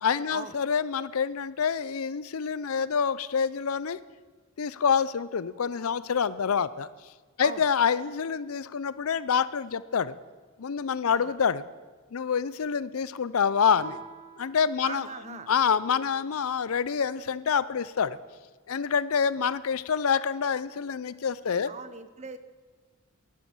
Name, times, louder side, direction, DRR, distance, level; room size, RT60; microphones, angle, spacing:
voice 1, 0.0-4.0 4.6-6.9 7.4-10.2 10.6-11.6 12.1-14.0 14.4-15.1 15.5-18.2 18.7-21.7, left 6 dB, 75° left, 17 dB, 0.5 m, -27 dB
Guitar, 13.8-16.2, right 7 dB, 55° right, 1.5 m, -48 dB
voice 2, 14.8-15.5 21.7-22.4, right 5 dB, 30° right, 12 dB, 0.7 m, -40 dB
11.5 x 11.0 x 7.1 m, 1.4 s
head